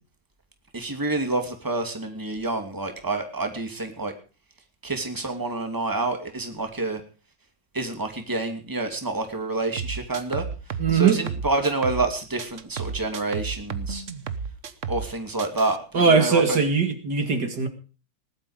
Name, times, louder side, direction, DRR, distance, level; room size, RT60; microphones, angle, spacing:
voice 1, 0.7-4.1 4.8-7.0 7.7-14.0 14.9-16.6, right 2 dB, 10° right, 5 dB, 2.5 m, -28 dB
sound 1, 9.8-12.1 12.4-15.1 15.4-15.8, right 6 dB, 45° right, 1.3 m, -33 dB
voice 2, 10.8-11.2 15.9-17.7, right 5 dB, 65° right, 7 dB, 2.6 m, -20 dB
19.5 x 12.0 x 5.0 m, 0.36 s
omnidirectional pair, 2.0 m